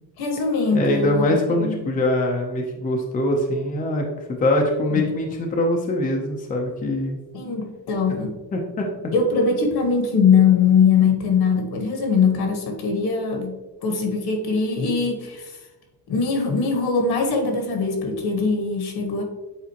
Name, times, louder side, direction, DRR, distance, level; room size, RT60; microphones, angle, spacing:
voice 1, 0.2-1.3 1.6-1.7 4.9-5.1 7.3-8.3 9.1-13.6 13.8-15.6 16.1-19.2, left 5 dB, 65° left, 5 dB, 1.3 m, -21 dB
voice 2, 0.7-7.2 8.5-8.9, left 1 dB, 20° left, 1 dB, 0.6 m, -23 dB
8.3 x 4.1 x 2.9 m, 1.1 s
cardioid pair, 180°, 41 cm